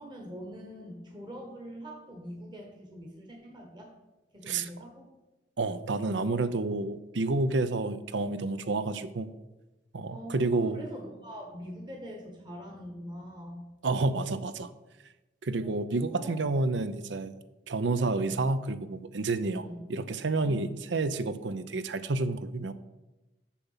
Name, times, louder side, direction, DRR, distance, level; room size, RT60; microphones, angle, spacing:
voice 1, 0.0-3.9 4.3-5.1 10.1-13.7 15.6-16.4 18.1-18.4 19.6-19.8 20.4-20.7, equal, 25° right, 0 dB, 1.2 m, -43 dB
voice 2, 5.6-9.3 9.9-10.8 13.8-14.7 15.4-17.3 17.7-22.7, right 3 dB, 75° right, 13 dB, 0.6 m, -29 dB
7.1 x 7.1 x 5.6 m, 1.1 s
head